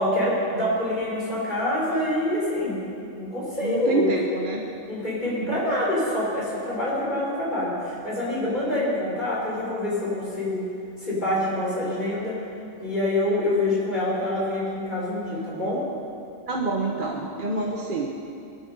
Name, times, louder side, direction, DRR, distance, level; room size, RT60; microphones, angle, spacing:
voice 1, 0.0-2.8 3.1-4.1 4.9-10.6 11.0-12.3 12.8-15.8, left 1 dB, 35° left, -6 dB, 5.2 m, -26 dB
voice 2, 3.6-4.7 5.3-5.6 16.5-18.1, right 3 dB, 40° right, 0 dB, 1.1 m, -27 dB
19.5 x 12.5 x 5.4 m, 2.6 s
omnidirectional pair, 1.4 m